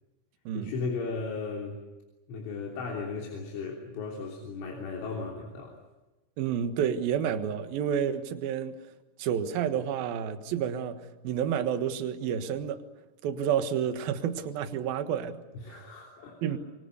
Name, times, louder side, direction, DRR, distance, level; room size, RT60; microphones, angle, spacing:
voice 1, 0.5-1.8 2.3-5.8 15.5-16.6, left 4 dB, 70° left, 5.6 m, -36 dB
voice 2, 6.4-8.8 9.2-12.8 13.2-15.4 15.7-15.8 16.4-16.6, right 8 dB, 65° right, 2.6 m, -30 dB
27.0 x 24.5 x 6.7 m
omnidirectional pair, 6.0 m